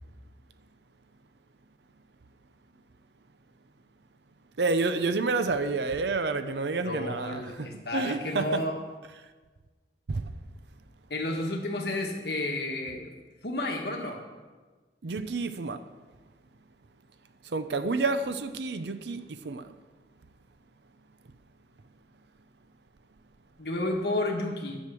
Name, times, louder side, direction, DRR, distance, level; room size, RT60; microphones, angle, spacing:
voice 1, 4.6-8.6 10.1-10.3 15.0-15.9 17.4-19.7, right 3 dB, 75° right, 0.6 m, -29 dB
voice 2, 6.8-8.8 11.1-13.1 13.4-14.2 23.6-24.8, left 2 dB, 65° left, 1.5 m, -31 dB
10.5 x 6.5 x 7.7 m
head